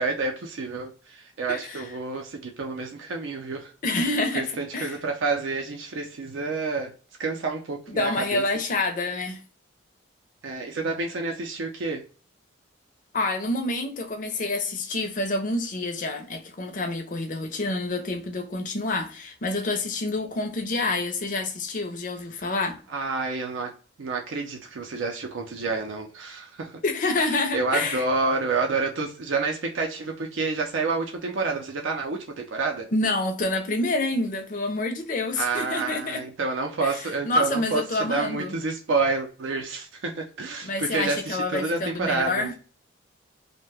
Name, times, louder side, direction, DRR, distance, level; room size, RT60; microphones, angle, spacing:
voice 1, 0.0-3.7 4.4-6.9 7.2-8.4 10.4-12.0 22.4-22.5 22.9-23.7 24.0-26.8 27.3-32.9 35.3-42.5, right 3 dB, 70° right, 0.5 m, -29 dB
voice 2, 1.5-1.9 3.8-4.9 7.9-9.4 13.1-22.8 26.8-28.0 32.9-36.2 36.8-38.6 40.6-42.5, left 2 dB, 40° left, 0.5 m, -27 dB
2.7 x 2.1 x 3.3 m
head